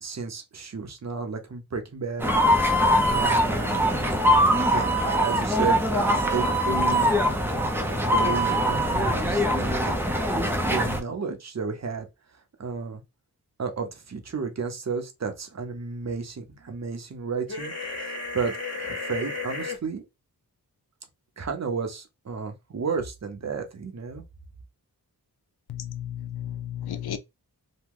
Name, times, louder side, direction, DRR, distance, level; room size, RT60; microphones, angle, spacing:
voice 1, 0.0-2.3 3.1-3.8 4.7-7.1 8.1-9.9 10.4-12.1 12.6-13.0 13.6-20.0 21.4-24.2, right 5 dB, 45° right, 0.7 m, -32 dB
sound 1, 2.2-11.0, equal, 5° right, 0.6 m, -22 dB
sound 2, 17.5-19.8, left 3 dB, 40° left, 1.4 m, -33 dB
voice 2, 25.7-27.2, left 10 dB, 80° left, 0.5 m, -33 dB
3.0 x 2.2 x 3.6 m
wide cardioid pair, 90°, 38 cm